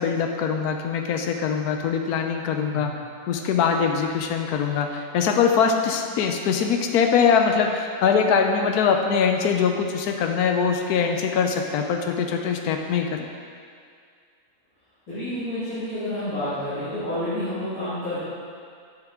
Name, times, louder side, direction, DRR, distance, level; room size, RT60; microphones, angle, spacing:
voice 1, 0.0-2.9 3.3-13.3, left 6 dB, 85° left, 4 dB, 1.1 m, -22 dB
voice 2, 15.1-18.2, left 1 dB, 65° left, -15 dB, 2.5 m, -29 dB
7.1 x 6.6 x 3.7 m, 2.3 s
omnidirectional pair, 1.6 m